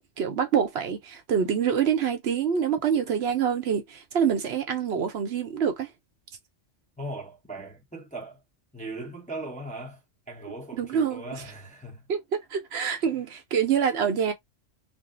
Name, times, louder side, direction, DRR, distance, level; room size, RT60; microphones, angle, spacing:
voice 1, 0.0-5.9 10.7-11.2 12.1-14.3, right 7 dB, 65° right, 0.8 m, -26 dB
voice 2, 7.0-8.4 8.7-12.0 13.0-13.2, right 2 dB, 10° left, 0.5 m, -39 dB
2.6 x 2.0 x 3.6 m
omnidirectional pair, 1.3 m